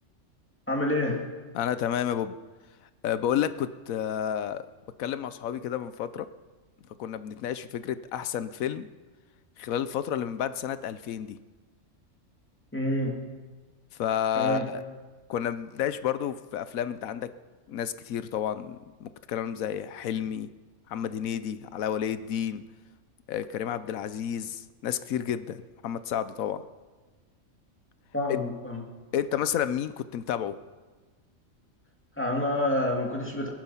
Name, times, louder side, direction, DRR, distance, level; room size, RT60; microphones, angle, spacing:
voice 1, 0.7-1.2 12.7-13.2 14.3-14.7 28.1-28.8 32.2-33.5, left 1 dB, 10° left, 0 dB, 2.3 m, -27 dB
voice 2, 1.5-2.4 3.0-4.6 5.0-6.3 7.0-8.9 9.6-11.4 14.0-14.8 15.3-17.3 17.7-20.5 20.9-22.6 23.3-26.6 28.3-28.4 29.1-30.5, left 9 dB, 85° left, 13 dB, 1.2 m, -30 dB
19.0 x 10.5 x 5.6 m, 1.3 s
omnidirectional pair, 1.4 m